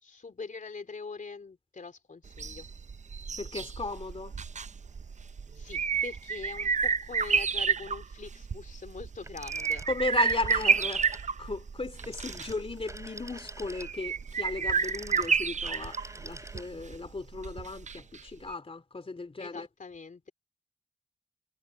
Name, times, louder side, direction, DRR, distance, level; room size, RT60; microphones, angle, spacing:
voice 1, 0.0-2.7 5.5-9.9 19.4-20.3, left 4 dB, 60° left, 3.4 m, -43 dB
sound 1, 2.3-18.2 18.5-18.6, right 6 dB, 50° right, 0.6 m, -31 dB
voice 2, 3.4-4.3 9.8-11.1 11.4-19.7, left 3 dB, 40° left, 2.9 m, -35 dB
Telephone, 9.2-11.3 12.0-17.0, right 1 dB, 20° right, 5.9 m, -46 dB
cardioid pair, 55°, 16 cm